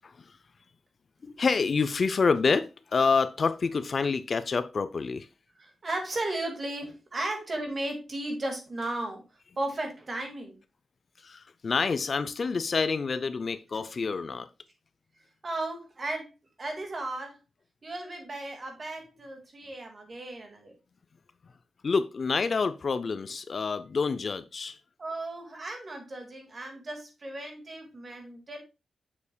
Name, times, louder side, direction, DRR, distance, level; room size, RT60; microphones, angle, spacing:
voice 1, 1.2-5.3 11.2-14.5 21.8-24.8, left 4 dB, 45° left, 0.4 m, -27 dB
voice 2, 5.6-9.2 9.6-10.6 15.4-16.3 16.6-17.4 17.8-20.8 25.0-28.6, right 2 dB, 35° right, 1.9 m, -35 dB
7.1 x 6.9 x 2.2 m
wide cardioid pair, 140°, 0 cm